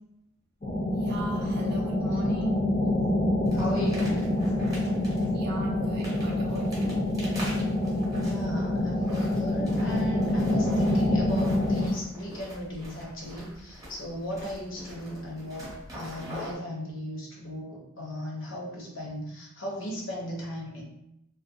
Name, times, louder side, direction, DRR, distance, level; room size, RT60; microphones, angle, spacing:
sound 1, 0.6-11.9, left 1 dB, 30° left, 0.5 m, -26 dB
voice 1, 1.0-2.6 5.3-6.9, right 1 dB, 50° right, -1 dB, 0.5 m, -37 dB
sound 2, 3.4-16.6, equal, 15° right, 0.7 m, -44 dB
voice 2, 3.5-4.2 8.2-20.8, equal, 65° left, -2 dB, 0.7 m, -37 dB
2.4 x 2.1 x 2.4 m, 0.82 s
head